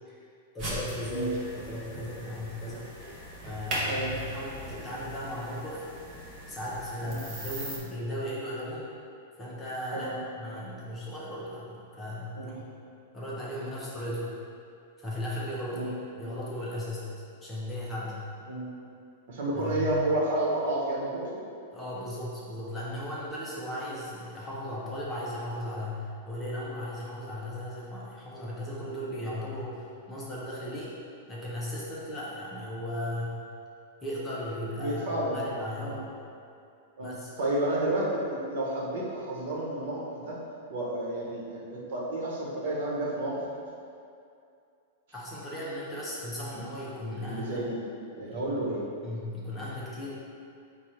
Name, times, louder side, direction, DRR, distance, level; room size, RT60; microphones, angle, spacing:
voice 1, 0.5-1.3 1.5-2.9 3.5-5.8 6.5-8.9 9.4-12.6 13.1-14.2 15.0-17.1 17.4-18.2 19.5-20.0 21.7-31.0 31.3-33.4 34.0-36.1 37.0-37.3 45.1-47.7 48.3-48.5 49.0-50.1, left 1 dB, 10° left, -7 dB, 0.6 m, -36 dB
sound 1, 0.6-7.8, right 1 dB, 25° right, 0.7 m, -38 dB
voice 2, 19.3-21.4 34.8-35.4 35.8-36.0 37.0-37.1 37.4-40.4 40.7-43.4 47.1-47.8 48.1-48.8, right 1 dB, 60° right, -5 dB, 1.0 m, -31 dB
4.9 x 2.3 x 4.4 m, 2.5 s
supercardioid pair, 170°, 0 cm